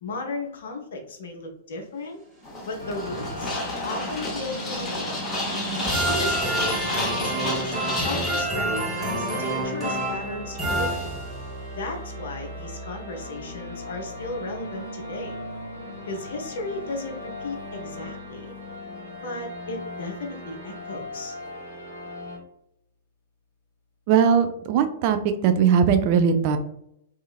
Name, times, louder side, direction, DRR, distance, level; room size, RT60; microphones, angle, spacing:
voice 1, 0.0-2.2 2.6-3.6 3.8-5.2 6.1-11.1 11.7-15.4 16.1-18.5 19.2-21.4, left 2 dB, 60° left, 3 dB, 0.6 m, -35 dB
sound 1, 2.4-8.4, left 2 dB, 15° left, 0.7 m, -31 dB
sound 2, 2.7-11.6, right 2 dB, 5° right, 1.2 m, -29 dB
sound 3, 2.8-22.4, left 1 dB, 90° right, 1.1 m, -38 dB
voice 2, 24.1-25.2 25.4-26.6, right 7 dB, 40° right, 8 dB, 0.3 m, -19 dB
2.7 x 2.4 x 2.3 m, 0.76 s
figure-of-eight pair, 105°, 0 cm